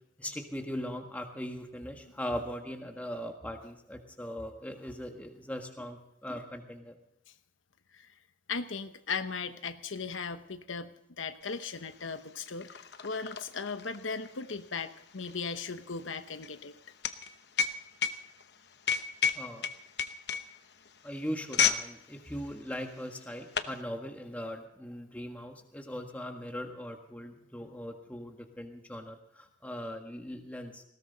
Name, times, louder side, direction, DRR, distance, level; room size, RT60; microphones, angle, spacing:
voice 1, 0.2-7.0 19.3-19.7 21.0-30.8, equal, 10° left, 4 dB, 1.6 m, -40 dB
voice 2, 8.5-16.7, left 5 dB, 85° left, 9 dB, 1.0 m, -37 dB
sound 1, 11.6-11.7 11.9-21.9 22.2-22.5 23.1-23.8, left 7 dB, 55° left, 0.9 m, -32 dB
19.5 x 17.5 x 4.1 m, 0.77 s
head